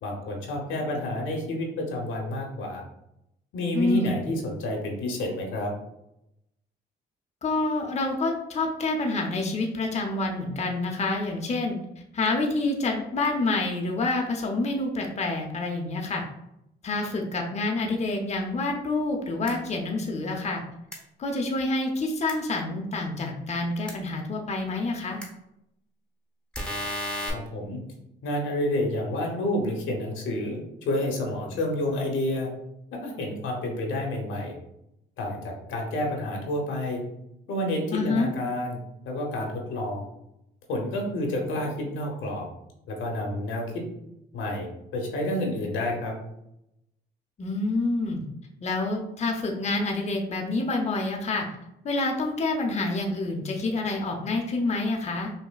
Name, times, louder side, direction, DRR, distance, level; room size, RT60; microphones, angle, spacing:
voice 1, 0.0-2.8 3.5-5.7 27.3-27.8 28.2-30.6 30.9-32.5 32.9-34.5 35.2-37.0 37.5-38.8 39.1-40.1 40.7-42.4 42.9-43.8 44.3-44.7 44.9-46.1, left 1 dB, 80° left, 0 dB, 1.0 m, -29 dB
voice 2, 3.7-4.2 7.4-11.8 12.1-16.2 16.8-20.6 21.2-25.2 37.9-38.3 47.4-48.2 48.6-51.5 51.8-55.3, left 2 dB, 35° left, 1 dB, 0.6 m, -27 dB
sound 1, 19.4-19.5 20.9-21.0 22.3-22.4 23.9-24.0 25.2-25.3 26.5-27.3, left 1 dB, 5° left, 0.8 m, -32 dB
5.5 x 2.1 x 2.3 m, 0.82 s
cardioid pair, 90°, 20 cm